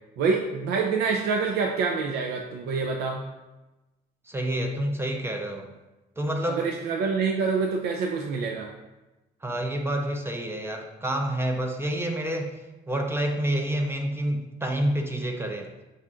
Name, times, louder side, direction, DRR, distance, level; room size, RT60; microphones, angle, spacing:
voice 1, 0.2-3.2 6.5-8.7, right 5 dB, 75° right, 1 dB, 0.5 m, -26 dB
voice 2, 4.3-5.7 6.2-6.7 9.4-12.5 12.9-15.7, right 1 dB, 15° right, 4 dB, 0.4 m, -28 dB
5.6 x 2.5 x 3.6 m, 1.1 s
cardioid pair, 110°, 17 cm